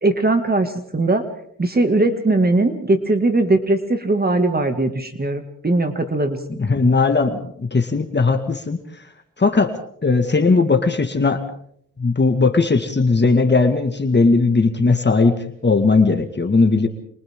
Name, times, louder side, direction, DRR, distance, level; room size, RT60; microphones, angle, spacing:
voice 1, 0.0-1.2 1.6-6.4, right 2 dB, 30° right, 7 dB, 2.3 m, -19 dB
voice 2, 6.6-8.8 9.4-9.7 10.0-11.4 12.0-15.4 15.6-16.9, left 3 dB, 35° left, 5 dB, 2.1 m, -17 dB
29.5 x 27.5 x 3.8 m, 0.67 s
cardioid pair, 75°, 33 cm